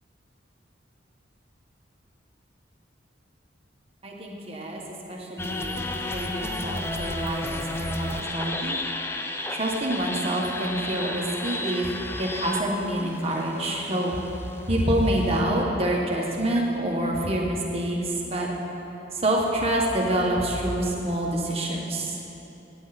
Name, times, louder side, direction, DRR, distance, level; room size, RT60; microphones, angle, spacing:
voice 1, 4.0-4.8 5.1-5.7 6.1-8.8 9.5-11.9 12.1-14.2 14.7-18.0 18.3-18.5 19.2-22.1, right 1 dB, 30° right, -2 dB, 1.7 m, -26 dB
sound 1, 5.4-15.4, left 2 dB, 15° left, 0.6 m, -33 dB
17.0 x 9.4 x 4.3 m, 3.0 s
head